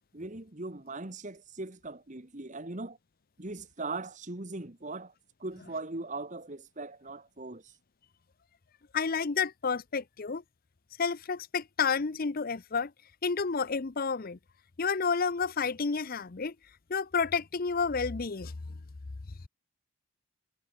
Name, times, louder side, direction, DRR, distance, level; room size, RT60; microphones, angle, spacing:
voice 1, 0.1-3.0 3.4-5.1 5.4-7.7, right 2 dB, 35° right, 1.5 m, -39 dB
voice 2, 8.9-10.4 11.0-12.9 13.2-14.4 14.8-16.5 16.9-18.5, left 5 dB, 40° left, 0.6 m, -30 dB
head